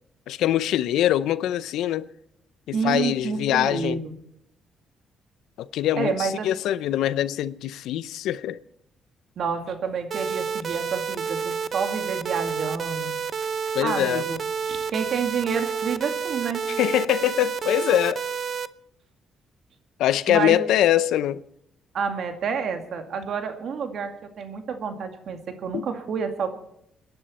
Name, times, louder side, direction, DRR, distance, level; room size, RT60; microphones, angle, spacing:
voice 1, 0.3-2.1 2.7-4.0 5.6-8.6 13.7-14.3 16.8-18.2 20.0-21.4 25.7-25.8, left 12 dB, 85° left, 0.6 m, -23 dB
voice 2, 2.7-4.1 6.0-6.5 9.4-13.2 13.8-14.4 14.7-16.6 20.3-20.6 21.9-26.5, right 6 dB, 65° right, 2.2 m, -29 dB
sound 1, 10.1-18.7, right 6 dB, 50° right, 0.6 m, -29 dB
29.0 x 10.5 x 4.3 m
cardioid pair, 90°, 0 cm